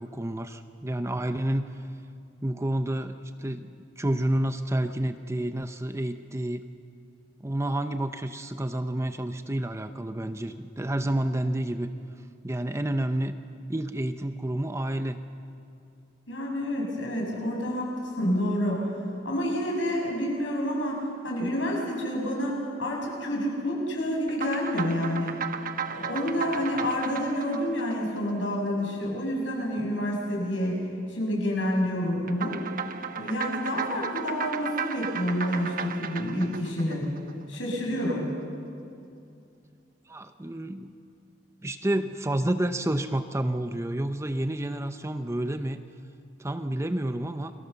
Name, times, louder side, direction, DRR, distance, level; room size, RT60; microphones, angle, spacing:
voice 1, 0.0-1.9 2.4-6.7 7.4-11.9 12.4-13.3 13.7-15.2 40.1-40.9 41.6-45.8 46.4-47.5, right 1 dB, 15° right, 9 dB, 0.7 m, -29 dB
voice 2, 16.3-18.9 19.2-25.3 25.9-32.6 33.1-37.1 37.5-38.3, equal, 90° left, -2 dB, 7.9 m, -28 dB
sound 1, 24.3-28.9 32.3-37.7, right 6 dB, 50° right, 1.1 m, -35 dB
29.5 x 23.0 x 7.1 m, 2.4 s
head